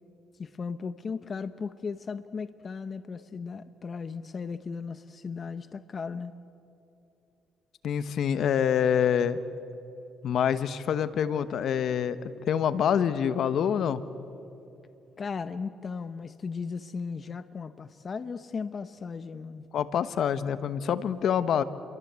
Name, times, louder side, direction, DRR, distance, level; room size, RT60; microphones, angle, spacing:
voice 1, 0.4-6.3 15.2-19.7, left 5 dB, 40° left, 12 dB, 0.9 m, -36 dB
voice 2, 7.8-9.4 10.2-14.0 19.7-21.6, left 8 dB, 70° left, 13 dB, 1.1 m, -26 dB
29.5 x 23.5 x 8.3 m, 2.9 s
cardioid pair, 90°, 0 cm